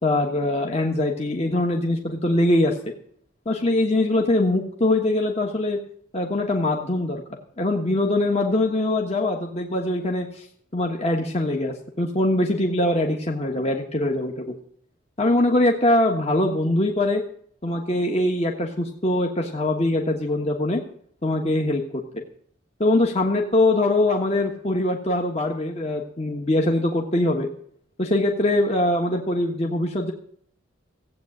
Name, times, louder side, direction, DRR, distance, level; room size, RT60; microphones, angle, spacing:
voice 1, 0.0-2.9 3.4-5.8 6.1-7.2 7.6-10.5 10.7-14.5 15.2-17.2 17.6-20.8 21.2-22.2 22.8-27.5 28.0-30.1, left 1 dB, 30° left, 1 dB, 1.4 m, -22 dB
15.5 x 8.5 x 7.9 m, 0.63 s
head